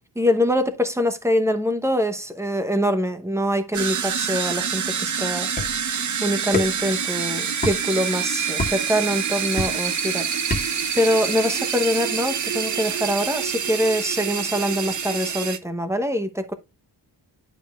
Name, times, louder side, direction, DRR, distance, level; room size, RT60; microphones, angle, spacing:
voice 1, 0.2-5.5 5.8-5.9 6.2-10.3 10.6-16.5, equal, 5° right, 0.9 m, -24 dB
sound 1, 3.7-15.6, right 7 dB, 45° right, 0.8 m, -26 dB
sound 2, 5.6-5.9 6.5-6.9 7.6-7.8 8.6-8.9 9.6-9.9 10.5-10.9, left 2 dB, 20° left, 1.8 m, -27 dB
11.0 x 5.3 x 2.3 m
wide cardioid pair, 135°, 41 cm